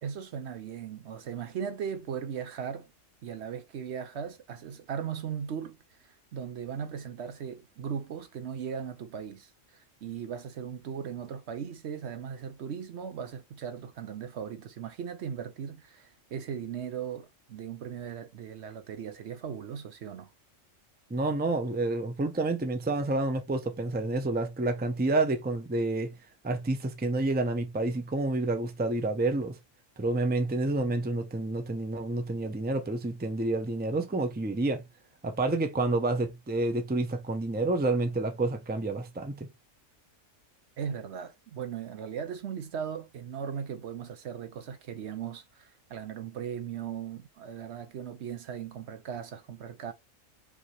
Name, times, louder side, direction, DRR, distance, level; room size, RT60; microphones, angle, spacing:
voice 1, 0.0-2.9 3.2-20.3 40.8-49.9, right 7 dB, 65° right, 0.9 m, -38 dB
voice 2, 21.1-26.1 26.4-29.6 30.0-34.8 35.2-39.5, right 2 dB, 10° right, 0.5 m, -29 dB
5.2 x 2.8 x 3.2 m
omnidirectional pair, 1.3 m